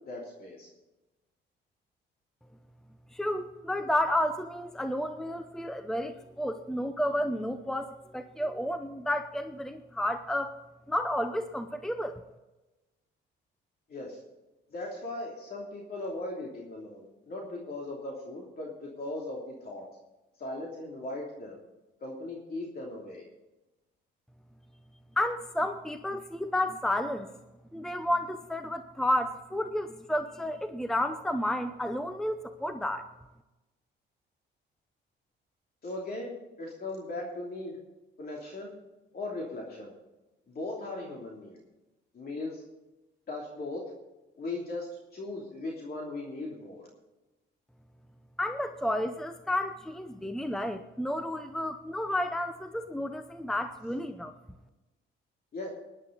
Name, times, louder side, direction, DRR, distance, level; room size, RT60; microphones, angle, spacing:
voice 1, 0.1-0.7 13.9-14.2 14.7-19.8 20.4-21.6 22.0-23.2 35.8-37.8 38.2-38.7 39.1-39.9 40.5-41.6 42.1-42.6 43.3-43.8 44.4-46.8 55.5-55.7, left 2 dB, 50° left, -2 dB, 2.9 m, -38 dB
voice 2, 3.1-10.6 10.9-12.2 25.2-27.3 27.7-33.1 48.4-54.3, left 1 dB, ahead, 9 dB, 0.7 m, -31 dB
17.5 x 11.0 x 4.0 m, 1.1 s
cardioid pair, 90°, 20 cm